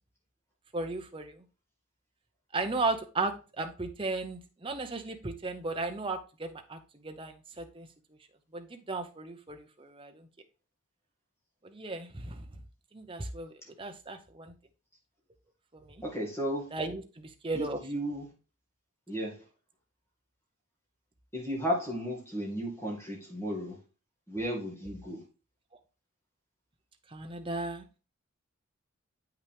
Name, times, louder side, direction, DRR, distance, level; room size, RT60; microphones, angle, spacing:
voice 1, 0.7-1.4 2.5-6.8 7.0-7.9 8.5-10.1 11.7-12.5 12.9-14.5 16.7-17.8 27.1-27.8, right 3 dB, 25° right, 5 dB, 0.7 m, -35 dB
voice 2, 16.0-16.7 17.5-18.3 19.1-19.4 21.3-23.7 24.3-25.2, equal, 10° left, -1 dB, 2.2 m, -34 dB
8.0 x 5.8 x 3.5 m, 0.33 s
head